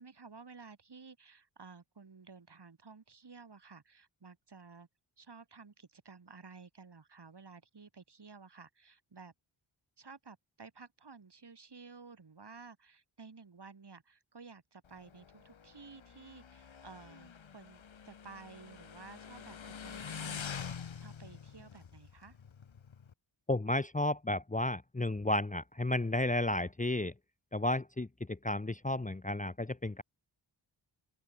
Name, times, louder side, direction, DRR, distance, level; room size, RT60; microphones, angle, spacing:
voice 1, 0.0-4.9 5.2-9.3 10.0-22.4, right 4 dB, 55° right, 7.2 m, -54 dB
Motorcycle, 14.8-23.1, left 7 dB, 70° left, 2.1 m, -46 dB
voice 2, 23.5-27.1 27.5-30.0, left 1 dB, 15° left, 1.0 m, -32 dB
open air
wide cardioid pair, 90°, 47 cm